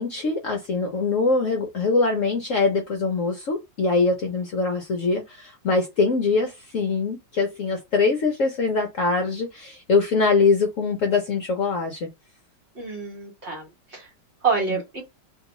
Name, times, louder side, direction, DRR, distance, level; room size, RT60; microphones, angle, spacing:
voice 1, 0.0-12.1, left 4 dB, 60° left, 0.9 m, -23 dB
voice 2, 12.7-14.1 14.4-15.0, right 5 dB, 40° right, 1.5 m, -27 dB
3.0 x 2.8 x 3.9 m
omnidirectional pair, 1.9 m